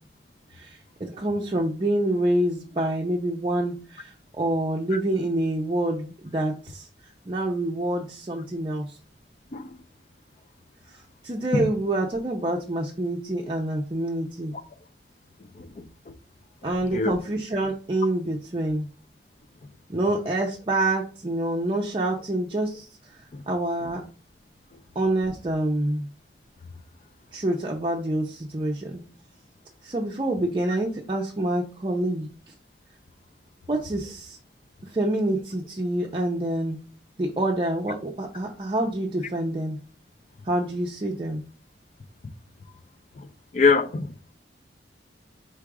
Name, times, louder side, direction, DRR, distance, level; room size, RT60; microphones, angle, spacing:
voice 1, 0.5-6.9 7.3-9.0 11.2-14.5 16.6-18.9 19.9-22.9 23.5-24.0 25.0-26.1 27.3-29.0 29.8-32.3 33.7-34.4 34.9-36.8 37.2-39.8 40.5-41.4, right 1 dB, 30° right, 0.5 m, -27 dB
voice 2, 43.5-44.1, left 4 dB, 40° left, 0.4 m, -23 dB
4.6 x 2.4 x 4.7 m
head